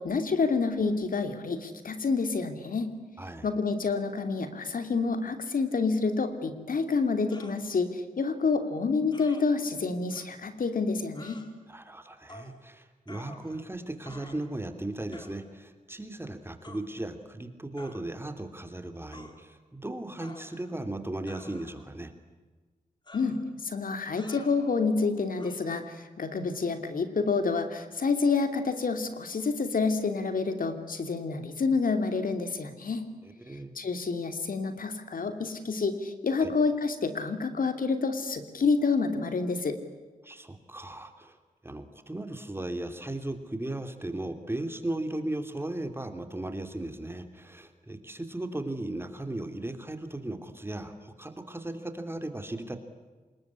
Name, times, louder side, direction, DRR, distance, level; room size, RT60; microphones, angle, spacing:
voice 1, 0.0-2.9 3.4-11.4 23.1-33.0 33.7-39.8, left 4 dB, 70° left, 8 dB, 2.8 m, -28 dB
sound 1, 7.3-7.6 9.1-9.4 10.1-10.3 11.1-11.5 12.3-12.6 13.1-13.7 14.0-14.5 15.1-15.4 16.6-16.8 17.8-18.0 19.1-19.4 20.2-20.7 21.3-21.9 23.1-23.4 24.2-24.6 25.4-25.5, left 2 dB, 30° left, 4.6 m, -49 dB
voice 2, 11.7-22.1 33.2-33.7 36.4-36.5 40.2-41.4 41.6-52.8, right 1 dB, 15° right, 7 dB, 3.0 m, -37 dB
26.5 x 21.0 x 9.9 m, 1.3 s
wide cardioid pair, 90°, 15 cm